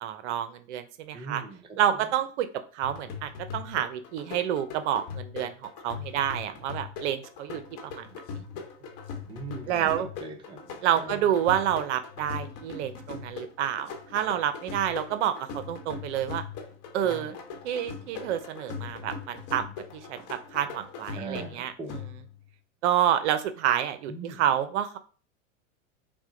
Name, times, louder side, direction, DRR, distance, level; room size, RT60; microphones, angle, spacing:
voice 1, 0.0-1.4 1.8-2.5 2.7-8.4 9.7-10.1 10.8-16.4 16.9-17.3 17.6-21.7 22.8-25.0, right 10 dB, 65° right, 10 dB, 0.7 m, -29 dB
voice 2, 1.1-1.6 1.9-2.0 9.3-10.6 10.9-11.2 17.0-17.4 21.2-22.1 24.1-24.4, right 3 dB, 15° right, 3 dB, 0.6 m, -40 dB
sound 1, 2.8-22.5, left 5 dB, 40° left, 1.1 m, -40 dB
6.0 x 2.2 x 3.8 m, 0.38 s
supercardioid pair, 130°, 37 cm